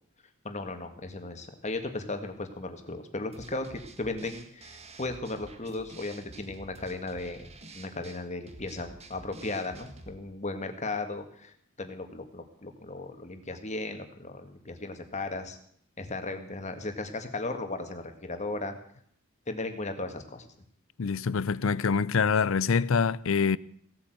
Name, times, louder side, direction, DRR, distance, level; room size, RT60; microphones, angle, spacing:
voice 1, 0.4-15.6 16.0-18.7 19.5-20.5, left 2 dB, 35° left, 1.9 m, -36 dB
sound 1, 3.3-10.2, right 2 dB, 30° right, 1.5 m, -49 dB
voice 2, 21.0-23.6, left 5 dB, 75° left, 0.5 m, -25 dB
17.0 x 8.8 x 7.9 m
head